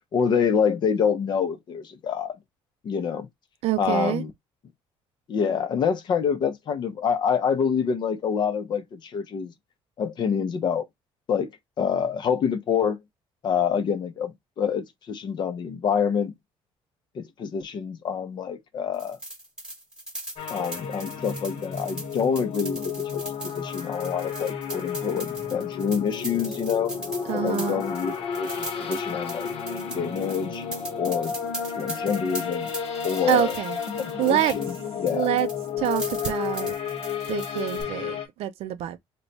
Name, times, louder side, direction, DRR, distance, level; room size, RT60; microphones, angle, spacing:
voice 1, 0.1-2.4 2.8-3.3 3.8-4.3 5.3-9.5 10.0-10.9 11.3-11.5 11.8-13.0 13.4-16.3 17.1-19.2 20.5-26.9 27.3-29.5 29.9-30.6 31.0-31.3 31.8-32.7 33.0-33.5 34.0-35.3, left 7 dB, 40° left, 0.7 m, -26 dB
voice 2, 3.6-4.2 27.3-27.8 33.3-33.8 34.2-34.5 35.1-35.5 35.8-36.7 37.3-39.0, right 12 dB, 65° right, 0.5 m, -26 dB
sound 1, 18.9-34.8 35.1-37.8, right 1 dB, 5° right, 1.3 m, -39 dB
sound 2, 20.4-38.3, left 7 dB, 60° left, 1.0 m, -32 dB
3.1 x 2.2 x 3.9 m
cardioid pair, 140°, 11 cm